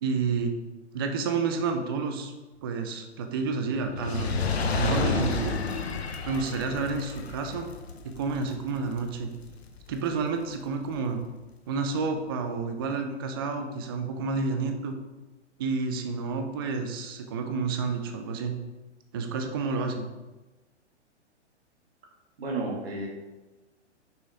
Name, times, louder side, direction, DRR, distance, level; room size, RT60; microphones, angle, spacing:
voice 1, 0.0-0.5 0.9-2.3 2.6-4.4 4.7-5.6 6.3-7.7 8.0-9.3 9.9-11.2 11.7-15.0 15.6-18.6 19.1-20.1, right 4 dB, 20° right, 6 dB, 0.4 m, -30 dB
Fire, 3.8-10.3 11.0-11.1, left 4 dB, 65° left, 0.8 m, -31 dB
voice 2, 22.4-23.1, right 3 dB, 60° right, -2 dB, 2.2 m, -31 dB
6.1 x 5.7 x 3.7 m, 1.1 s
figure-of-eight pair, 115°, 35 cm